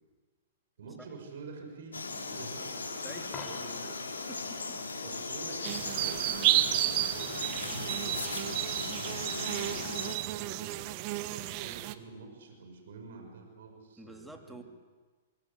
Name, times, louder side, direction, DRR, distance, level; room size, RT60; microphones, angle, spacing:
voice 1, 0.8-4.0 5.0-8.4 8.7-10.7 11.1-14.6, right 4 dB, 65° right, 4 dB, 6.2 m, -48 dB
Frog, 1.9-10.2, left 3 dB, 85° left, 3.6 m, -38 dB
voice 2, 3.0-3.3 4.3-4.8 14.0-14.6, right 1 dB, 5° right, 3 dB, 3.0 m, -48 dB
Coin (dropping), 3.2-4.1 10.2-10.3, left 4 dB, 25° left, 5.1 m, -45 dB
sound 1, 5.6-11.9, right 16 dB, 45° right, 1.3 m, -32 dB
24.5 x 23.0 x 8.4 m, 1.4 s
hypercardioid pair, 115°, 0 cm